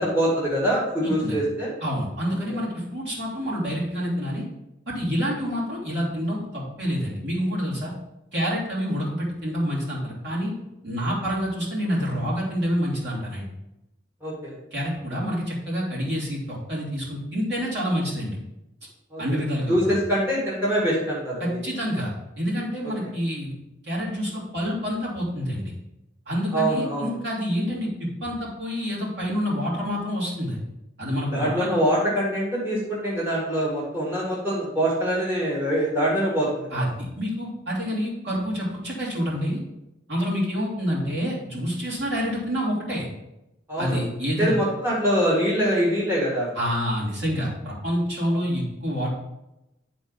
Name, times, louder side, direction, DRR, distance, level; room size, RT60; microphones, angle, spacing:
voice 1, 0.0-1.7 2.5-2.6 14.2-14.5 19.1-19.4 19.7-21.6 26.5-27.1 31.3-36.8 43.7-44.0 44.3-46.5 48.3-48.4, equal, 10° right, -7 dB, 1.8 m, -24 dB
voice 2, 1.0-1.3 1.8-4.4 4.9-7.9 8.3-10.5 10.8-13.5 14.7-18.4 19.2-20.0 21.4-22.1 22.4-23.5 23.8-25.7 26.3-30.6 31.0-31.7 36.7-39.6 40.1-43.1 43.8-44.5 46.5-49.1, equal, 65° right, -7 dB, 3.2 m, -27 dB
10.5 x 4.3 x 4.1 m, 0.90 s
head